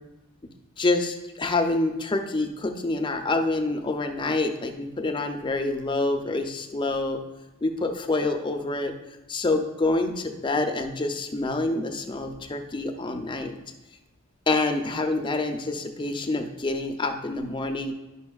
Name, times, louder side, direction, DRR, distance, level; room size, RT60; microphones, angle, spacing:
voice 1, 0.8-7.2 7.6-8.9 9.3-13.6 14.5-17.9, left 2 dB, 20° left, 5 dB, 0.5 m, -27 dB
10.5 x 5.7 x 2.3 m, 1.0 s
head